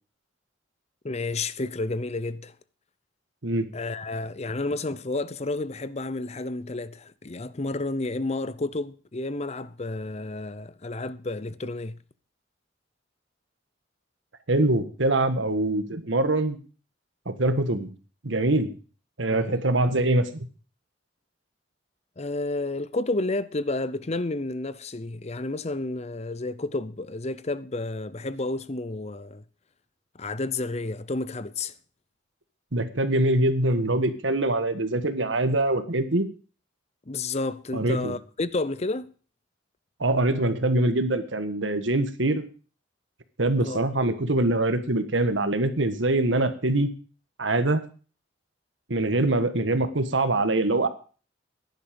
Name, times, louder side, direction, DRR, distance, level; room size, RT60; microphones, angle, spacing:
voice 1, 1.0-2.5 3.7-12.0 19.3-19.6 22.2-29.4 30.1-31.7 37.1-39.1 43.6-43.9, left 2 dB, 35° left, 0.7 m, -31 dB
voice 2, 14.5-16.6 17.2-17.9 18.2-18.7 19.2-20.5 32.7-36.3 37.7-38.1 40.0-42.4 43.4-46.9 47.4-47.8 48.9-50.9, right 2 dB, 80° right, 1.6 m, -24 dB
15.0 x 10.5 x 5.3 m
head